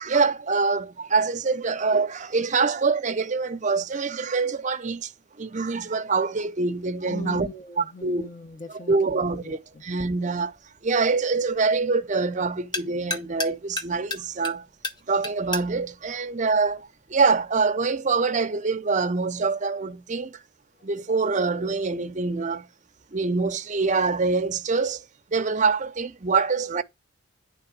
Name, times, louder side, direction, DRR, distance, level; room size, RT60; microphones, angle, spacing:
voice 1, 0.0-5.1 5.4-7.5 8.0-8.3 8.9-10.5 10.8-14.6 15.1-20.4 20.8-22.7 23.1-25.0 25.3-26.8, right 4 dB, 35° right, 0.6 m, -25 dB
voice 2, 7.1-9.8, left 2 dB, 35° left, 0.9 m, -40 dB
sound 1, 9.7-17.3, left 2 dB, 20° left, 0.6 m, -37 dB
9.7 x 3.5 x 5.9 m
head